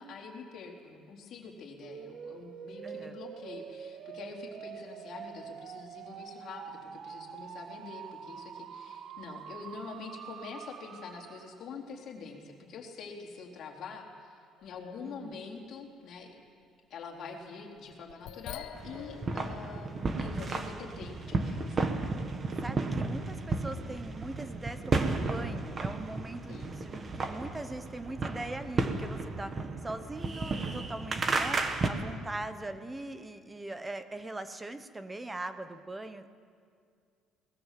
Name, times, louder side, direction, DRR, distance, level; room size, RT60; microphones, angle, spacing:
voice 1, 0.0-16.4 16.9-22.0 26.5-26.9 30.9-31.3, left 4 dB, 50° left, 0 dB, 3.8 m, -45 dB
sound 1, 1.8-11.7, right 8 dB, 50° right, 0.8 m, -45 dB
voice 2, 2.8-3.2 15.0-15.4 22.6-36.4, right 2 dB, 10° right, 10 dB, 1.0 m, -41 dB
sound 2, 14.6-15.8 16.2-16.3 17.8-19.8 20.3-20.4, left 11 dB, 85° left, 1.1 m, -46 dB
sound 3, 18.7-31.9, right 3 dB, 25° right, 1.6 m, -33 dB
24.0 x 19.5 x 7.6 m, 2.2 s
cardioid pair, 150°, 0 cm